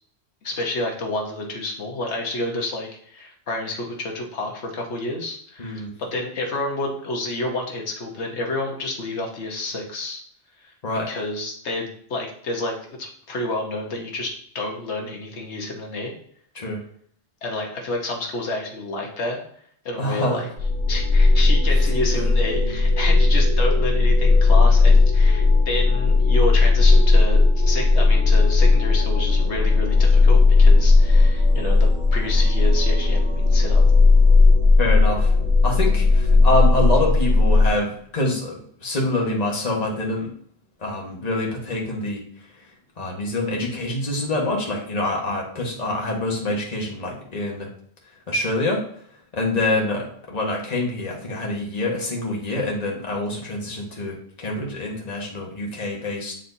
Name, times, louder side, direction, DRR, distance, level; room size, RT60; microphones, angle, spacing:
voice 1, 0.4-10.2 11.1-16.1 17.4-19.4 19.8-20.5 20.9-33.8, left 2 dB, 90° left, 0 dB, 1.4 m, -29 dB
voice 2, 5.6-5.9 10.8-11.1 16.5-16.8 20.0-20.5 34.8-35.3 35.6-40.3 40.8-42.2 43.0-47.7 48.3-48.8 49.3-56.3, left 2 dB, 40° left, -1 dB, 1.4 m, -26 dB
sound 1, 20.6-37.7, left 3 dB, 70° right, 2.1 m, -16 dB
9.0 x 4.2 x 2.7 m, 0.62 s
omnidirectional pair, 1.1 m